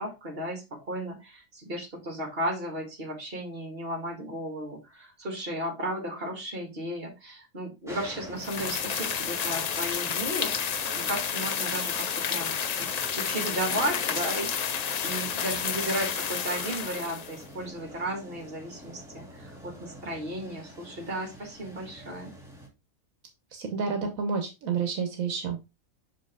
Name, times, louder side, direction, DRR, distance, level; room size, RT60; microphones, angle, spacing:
voice 1, 0.0-22.3, right 1 dB, 45° right, 2 dB, 2.2 m, -35 dB
sound 1, 7.9-22.7, equal, ahead, 2.1 m, -45 dB
sound 2, 8.4-17.4, left 7 dB, 85° left, 0.3 m, -30 dB
voice 2, 23.5-25.6, right 5 dB, 80° right, 4 dB, 1.5 m, -29 dB
6.1 x 5.1 x 3.5 m, 0.25 s
omnidirectional pair, 1.4 m